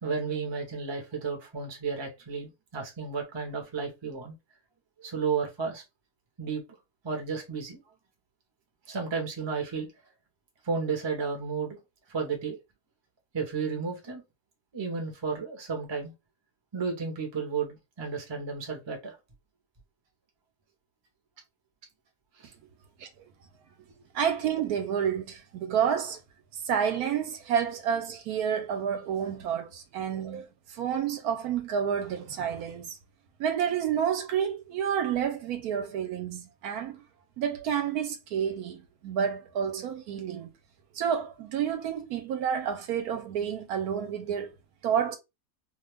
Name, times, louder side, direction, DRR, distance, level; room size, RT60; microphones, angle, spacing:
voice 1, 0.0-4.4 5.0-5.8 6.4-6.6 7.0-7.8 8.9-9.9 10.6-11.8 12.1-12.6 13.3-14.2 14.7-16.1 16.7-19.2 22.4-22.5, right 5 dB, 30° right, 0.5 m, -32 dB
voice 2, 24.1-26.2 26.5-33.0 33.4-37.0 37.4-40.5 40.9-44.5 44.8-45.2, right 8 dB, 75° right, 1.0 m, -29 dB
2.6 x 2.3 x 3.2 m
omnidirectional pair, 1.7 m